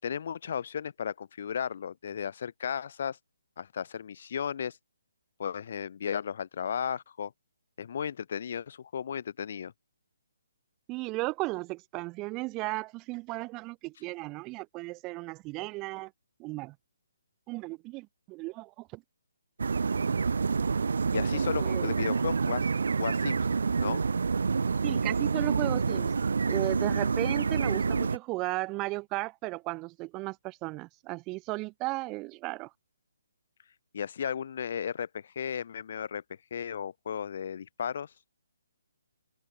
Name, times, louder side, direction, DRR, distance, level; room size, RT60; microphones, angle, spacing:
voice 1, 0.0-3.2 3.6-4.8 5.4-7.3 7.8-9.7 21.1-22.7 23.0-23.5 23.8-24.0 33.9-36.2 36.5-38.1, left 8 dB, 50° left, 6.3 m, -34 dB
voice 2, 10.9-16.1 16.4-16.7 17.5-19.0 21.3-21.9 24.8-26.1 26.5-32.7, right 23 dB, 20° right, 1.4 m, -35 dB
sound 1, 19.6-28.2, right 5 dB, 75° right, 4.2 m, -28 dB
hypercardioid pair, 150°, 0 cm